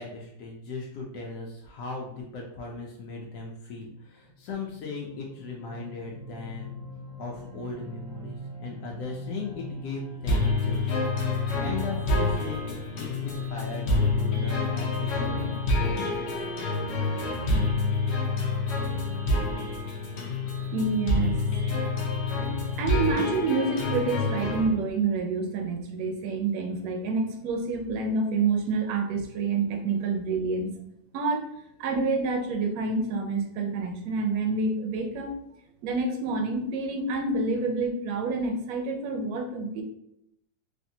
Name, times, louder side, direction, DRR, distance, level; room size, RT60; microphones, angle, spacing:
voice 1, 0.0-6.8 7.2-11.2 11.6-16.5, left 3 dB, 90° left, -1 dB, 1.2 m, -38 dB
sound 1, 4.2-21.0, left 1 dB, 40° right, 0.6 m, -45 dB
sound 2, 10.3-24.7, left 3 dB, 55° left, 0.8 m, -27 dB
voice 2, 20.7-21.4 22.5-30.7 31.1-31.5 31.8-35.3 35.8-39.8, right 3 dB, 70° right, 3 dB, 1.0 m, -28 dB
3.3 x 2.5 x 2.7 m, 0.79 s
omnidirectional pair, 1.7 m